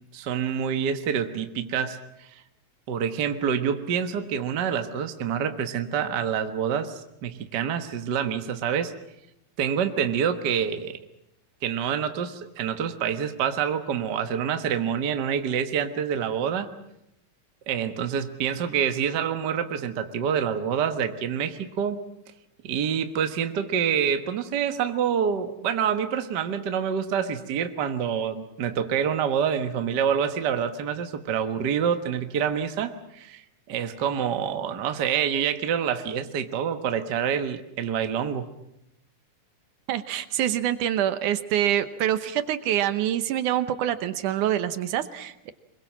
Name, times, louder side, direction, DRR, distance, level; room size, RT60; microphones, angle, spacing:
voice 1, 0.1-2.0 2.9-8.9 9.6-11.0 11.6-16.7 17.7-22.0 22.6-33.4 33.7-38.5, right 8 dB, 50° right, 7 dB, 1.3 m, -27 dB
voice 2, 39.9-45.5, right 11 dB, 75° right, 12 dB, 2.4 m, -26 dB
25.0 x 22.0 x 7.5 m, 0.83 s
omnidirectional pair, 3.7 m